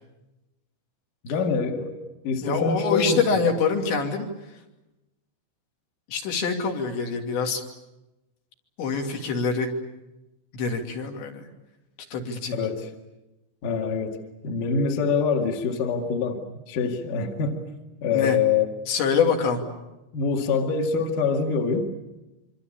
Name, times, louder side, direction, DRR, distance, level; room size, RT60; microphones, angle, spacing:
voice 1, 1.2-2.0 2.2-3.4 12.5-12.9 13.6-16.4 16.7-17.6 18.0-18.7 20.1-21.9, left 5 dB, 50° left, 3 dB, 3.2 m, -25 dB
voice 2, 2.4-4.3 6.1-7.6 8.8-9.7 10.5-11.5 12.1-12.6 18.1-18.4 18.9-19.6, left 5 dB, 70° left, 2 dB, 5.0 m, -25 dB
26.0 x 25.5 x 8.8 m, 0.98 s
omnidirectional pair, 5.5 m